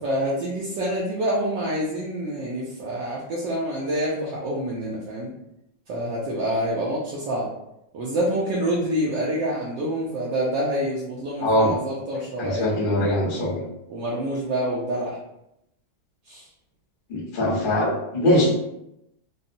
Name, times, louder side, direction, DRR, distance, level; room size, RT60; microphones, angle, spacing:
voice 1, 0.0-5.3 5.9-7.5 7.9-12.7 13.9-15.2 16.3-16.4, right 1 dB, 75° right, -5 dB, 1.2 m, -27 dB
voice 2, 11.4-11.7 12.4-13.6 17.1-18.5, left 1 dB, 40° left, -7 dB, 0.8 m, -22 dB
4.0 x 2.0 x 2.6 m, 0.82 s
omnidirectional pair, 2.2 m